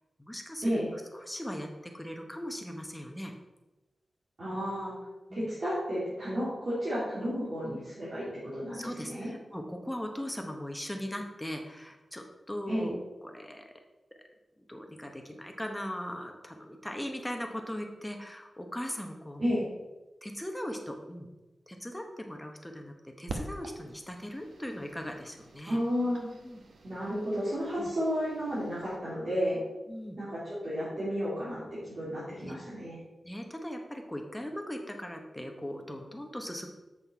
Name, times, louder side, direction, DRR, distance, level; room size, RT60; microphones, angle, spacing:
voice 1, 0.2-0.8 1.1-3.3 5.3-5.5 8.7-13.0 13.2-13.7 14.7-19.6 20.2-21.3 21.7-25.8 26.4-26.6 27.8-27.9 29.9-30.2 32.4-32.5 33.2-36.7, equal, 5° left, 3 dB, 0.9 m, -39 dB
voice 2, 4.4-4.9 5.3-8.3 8.5-9.3 12.7-12.9 19.4-19.6 25.7-26.3 26.8-29.6 30.2-33.0, equal, 45° right, -12 dB, 3.1 m, -32 dB
sound 1, 23.3-29.0, right 2 dB, 85° right, 0.9 m, -46 dB
7.5 x 6.1 x 4.6 m, 1.1 s
wide cardioid pair, 165°, 0 cm